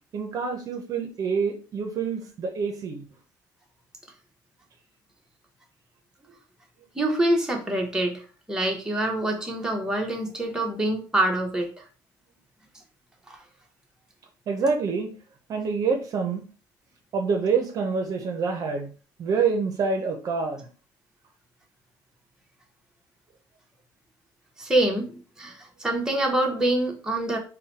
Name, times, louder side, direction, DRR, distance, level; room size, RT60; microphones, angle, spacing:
voice 1, 0.1-3.0 14.5-15.1 15.5-16.4 17.1-18.9 19.2-20.6, right 5 dB, 50° right, 4 dB, 0.7 m, -26 dB
voice 2, 7.0-8.2 8.5-11.7 24.6-25.5 25.8-27.4, right 1 dB, 10° right, 1 dB, 1.0 m, -25 dB
3.8 x 2.2 x 4.0 m, 0.36 s
cardioid pair, 115°, 8 cm